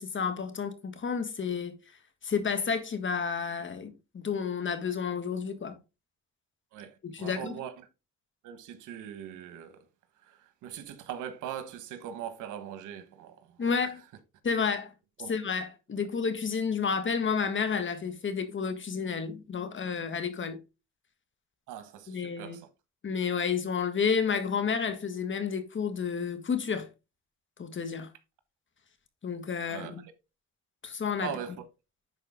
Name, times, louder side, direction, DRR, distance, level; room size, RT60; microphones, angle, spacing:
voice 1, 0.0-1.8 2.2-5.8 7.0-7.6 13.6-14.0 14.4-14.9 15.3-20.6 22.1-22.6 23.0-26.9 27.6-28.1 29.2-30.0 30.8-31.3, left 6 dB, 40° left, 1.7 m, -31 dB
voice 2, 6.7-7.9 8.4-9.8 10.2-13.9 15.2-15.3 21.7-22.7 29.7-30.1 31.2-31.6, right 9 dB, 90° right, 1.4 m, -41 dB
10.5 x 4.4 x 3.6 m
cardioid pair, 90°, 30 cm